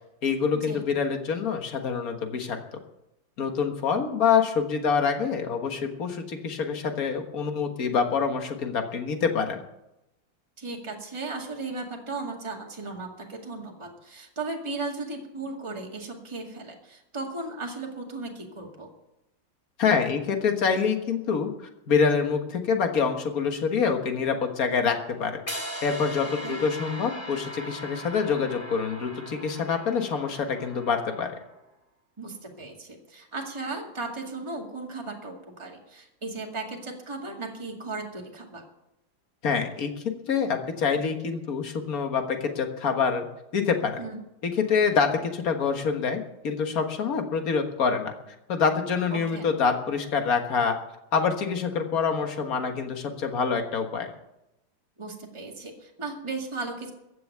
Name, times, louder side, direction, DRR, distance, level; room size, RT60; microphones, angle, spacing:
voice 1, 0.2-2.6 3.4-9.6 19.8-25.4 25.8-31.3 39.4-43.3 43.5-44.0 44.4-48.1 48.5-50.8 51.1-54.1, left 6 dB, 50° left, 5 dB, 1.9 m, -26 dB
voice 2, 10.6-18.9 26.4-26.6 32.2-38.7 44.0-44.2 49.1-49.5 55.0-56.9, right 3 dB, 15° right, 0 dB, 2.1 m, -36 dB
sound 1, 25.5-31.6, equal, 25° left, 2.6 m, -39 dB
15.0 x 7.1 x 9.3 m, 0.87 s
omnidirectional pair, 2.0 m